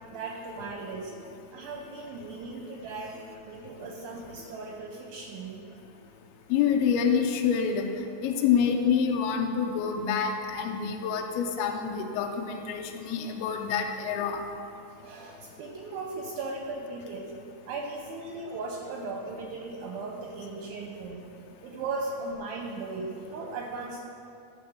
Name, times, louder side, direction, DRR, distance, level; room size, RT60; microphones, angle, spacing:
voice 1, 0.1-1.1 1.5-3.2 3.5-5.7 15.0-17.3 17.7-21.3 21.6-24.0, right 3 dB, 80° right, 0 dB, 2.3 m, -37 dB
voice 2, 6.5-7.9 8.2-14.4, left 7 dB, 85° left, 3 dB, 2.5 m, -27 dB
12.0 x 4.2 x 7.0 m, 2.5 s
omnidirectional pair, 4.9 m